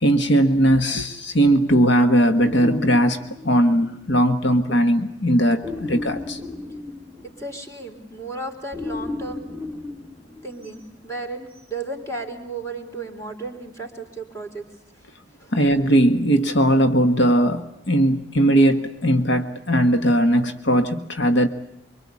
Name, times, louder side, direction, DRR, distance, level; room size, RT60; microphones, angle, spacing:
voice 1, 0.0-6.4 15.5-21.5, right 1 dB, 70° left, 8 dB, 1.5 m, -19 dB
sound 1, 2.4-4.1 5.6-7.7 8.7-10.9, left 2 dB, 10° right, 2.0 m, -34 dB
voice 2, 7.2-9.4 10.4-14.7 15.4-15.5, right 2 dB, 15° left, 4 dB, 3.9 m, -34 dB
25.0 x 24.5 x 8.5 m, 0.78 s
head